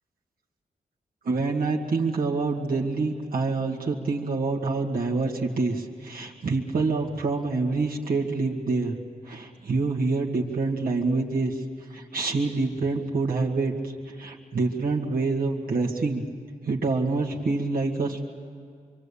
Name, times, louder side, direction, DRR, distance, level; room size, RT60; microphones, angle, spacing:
voice 1, 1.2-8.9 9.3-11.6 11.9-16.2 16.6-18.2, right 3 dB, 70° right, -2 dB, 2.1 m, -26 dB
25.5 x 23.5 x 8.5 m, 2.1 s
cardioid pair, 65°, 15 cm